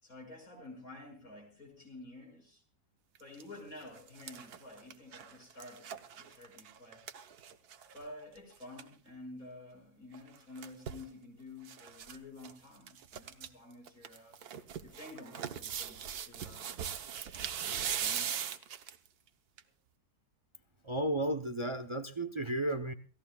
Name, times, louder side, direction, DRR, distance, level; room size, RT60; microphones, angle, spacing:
voice 1, 0.0-2.6 3.2-7.0 7.9-14.4 14.8-16.7 18.0-18.4, left 2 dB, 70° left, 1 dB, 6.4 m, -50 dB
sound 1, 3.2-3.4 3.8-8.0 8.4-8.5 8.6-8.9 10.1-11.1 11.7-12.2 12.4-12.5 12.9-13.5 13.9-19.1 19.6-19.7, right 8 dB, 85° right, 1.4 m, -40 dB
voice 2, 20.8-22.9, right 1 dB, 40° right, 10 dB, 0.4 m, -33 dB
29.0 x 16.0 x 2.3 m, 0.39 s
omnidirectional pair, 1.6 m